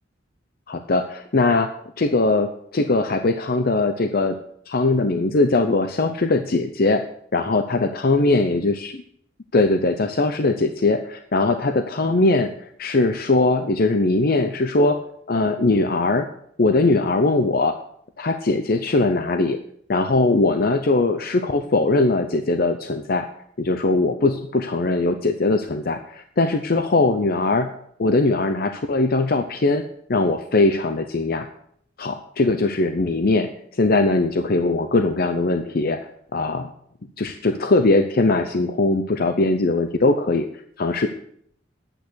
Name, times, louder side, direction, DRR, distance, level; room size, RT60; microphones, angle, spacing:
voice 1, 0.7-1.7 2.0-4.4 4.7-7.0 7.3-9.0 9.5-15.0 15.3-16.3 16.6-17.8 18.2-19.6 19.9-23.3 23.6-27.7 28.0-29.8 30.1-31.5 32.0-36.0 36.3-36.7 37.2-40.5 40.8-41.1, left 2 dB, 50° left, 7 dB, 0.7 m, -20 dB
10.5 x 9.1 x 6.3 m, 0.66 s
head